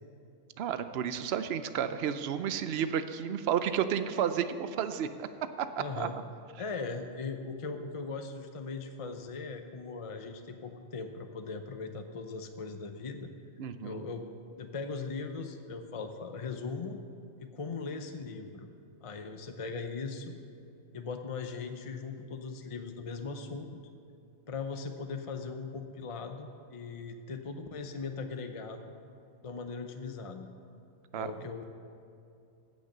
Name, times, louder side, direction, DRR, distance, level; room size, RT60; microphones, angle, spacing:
voice 1, 0.6-5.3 5.6-5.7 6.0-6.1 13.6-14.0 31.1-31.3, right 8 dB, 60° right, 11 dB, 0.8 m, -31 dB
voice 2, 5.8-6.1 6.6-13.3 13.8-14.2 14.6-17.0 17.4-18.7 19.0-20.4 20.9-23.8 24.5-28.9 29.4-30.5 31.1-31.6, left 4 dB, 40° left, 6 dB, 0.5 m, -39 dB
16.5 x 6.4 x 6.7 m, 2.6 s
omnidirectional pair, 1.3 m